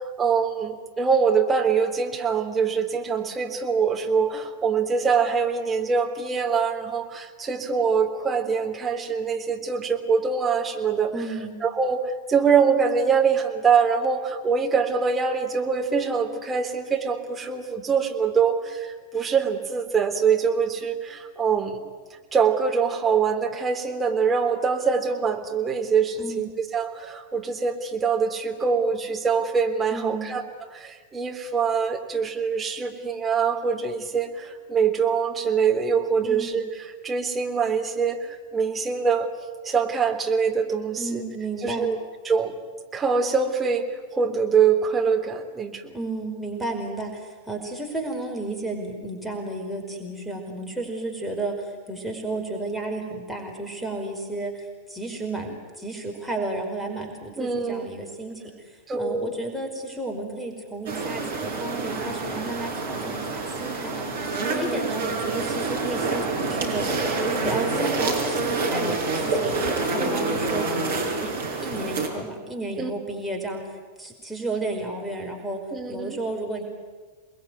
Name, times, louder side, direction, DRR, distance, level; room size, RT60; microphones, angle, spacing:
voice 1, 0.2-11.1 11.6-21.8 22.3-30.4 30.7-39.3 39.6-41.2 41.6-42.0 42.3-42.6 42.9-43.9 44.1-46.0 57.4-57.9 58.9-59.3 64.5-64.9 70.0-70.4 72.8-72.9 75.7-76.2, right 6 dB, 15° right, 2 dB, 3.4 m, -24 dB
voice 2, 11.1-11.6 26.2-26.5 29.9-30.3 36.2-36.6 41.0-41.9 45.9-71.3 71.6-75.6 75.9-76.6, right 2 dB, ahead, 2 dB, 5.2 m, -32 dB
sound 1, 60.9-72.1, right 3 dB, 65° right, 5.8 m, -27 dB
29.0 x 21.0 x 9.5 m, 1.4 s
figure-of-eight pair, 90°, 0 cm